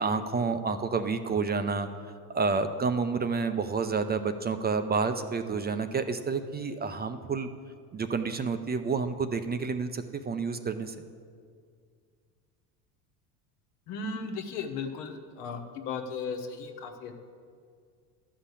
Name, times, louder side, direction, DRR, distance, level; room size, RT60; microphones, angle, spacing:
voice 1, 0.0-1.9 2.3-7.5 7.9-10.9, right 4 dB, 20° right, 9 dB, 0.6 m, -29 dB
voice 2, 13.9-17.2, left 4 dB, 80° left, 4 dB, 1.3 m, -36 dB
12.0 x 5.8 x 8.3 m, 2.1 s
supercardioid pair, 95°, 46 cm